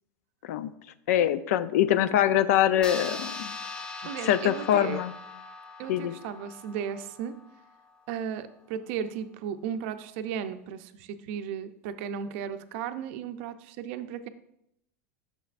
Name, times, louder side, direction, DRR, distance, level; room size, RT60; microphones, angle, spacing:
voice 1, 1.1-3.5 4.3-5.1 5.9-6.1, left 11 dB, 75° left, 14 dB, 0.4 m, -24 dB
sound 1, 2.8-7.7, left 3 dB, 10° left, 0.4 m, -41 dB
voice 2, 4.0-5.0 5.8-7.3 8.1-14.3, right 8 dB, 55° right, 10 dB, 0.5 m, -35 dB
9.2 x 6.6 x 2.5 m, 0.78 s
supercardioid pair, 165°, 8 cm